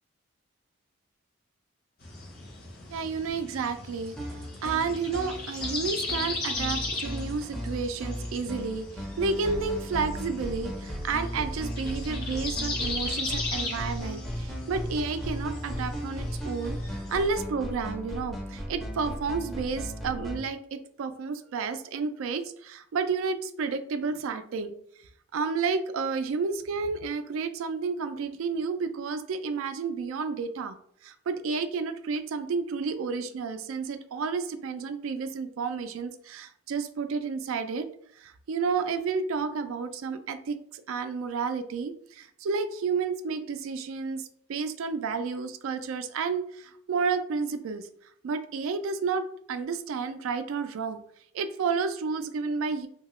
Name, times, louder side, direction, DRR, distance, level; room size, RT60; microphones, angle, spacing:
sound 1, 2.0-17.3, left 3 dB, 50° left, 0.7 m, -37 dB
voice 1, 2.9-4.2 4.6-24.7 25.3-30.8 31.0-37.9 38.2-47.9 48.2-51.0 51.3-52.9, right 5 dB, 80° right, 10 dB, 0.3 m, -31 dB
sound 2, 4.1-20.4, equal, ahead, 0.5 m, -36 dB
2.8 x 2.3 x 2.9 m, 0.66 s
head